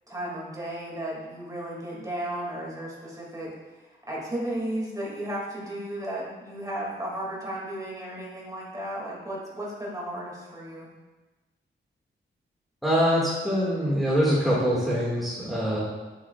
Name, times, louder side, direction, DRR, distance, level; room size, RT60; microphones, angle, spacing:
voice 1, 0.1-10.9, right 1 dB, 20° right, -4 dB, 2.4 m, -34 dB
voice 2, 12.8-15.8, equal, ahead, -7 dB, 1.9 m, -24 dB
10.0 x 8.8 x 2.4 m, 1.2 s
wide cardioid pair, 125°, 20 cm